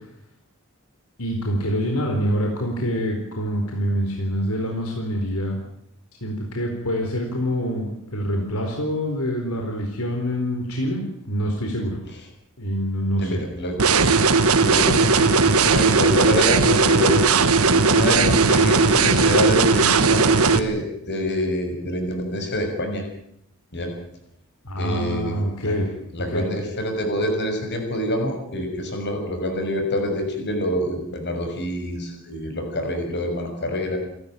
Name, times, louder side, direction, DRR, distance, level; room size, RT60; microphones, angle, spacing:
voice 1, 1.2-5.6 6.2-12.0 12.6-13.4 24.6-25.9 26.3-26.5, equal, 75° left, 2 dB, 4.2 m, -25 dB
voice 2, 13.1-13.7 14.6-17.2 17.7-23.0 23.7-23.9 24.8-25.9 26.1-34.0, left 1 dB, 50° left, 4 dB, 6.8 m, -26 dB
sound 1, 13.8-20.6, right 4 dB, 75° right, 1.6 m, -17 dB
28.5 x 13.5 x 9.0 m, 0.74 s
head